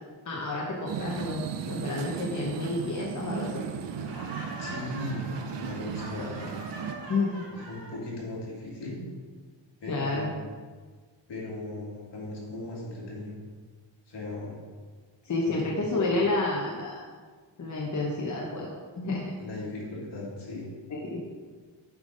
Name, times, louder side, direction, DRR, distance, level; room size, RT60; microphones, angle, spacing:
voice 1, 0.3-3.6 6.1-6.5 7.1-7.4 9.9-10.3 15.2-17.0 17.6-19.2 20.9-21.2, left 2 dB, 40° left, -2 dB, 0.8 m, -30 dB
sound 1, 0.9-6.9, right 7 dB, 65° right, 0.6 m, -36 dB
Laughter, 4.0-8.0, right 2 dB, 50° right, 1.8 m, -42 dB
voice 2, 4.6-6.3 7.5-9.0 9.8-10.5 11.3-13.4 14.1-14.6 15.5-16.1 19.4-20.7, left 2 dB, 65° left, -5 dB, 2.1 m, -37 dB
7.4 x 3.8 x 5.1 m, 1.5 s
wide cardioid pair, 170°, 45 cm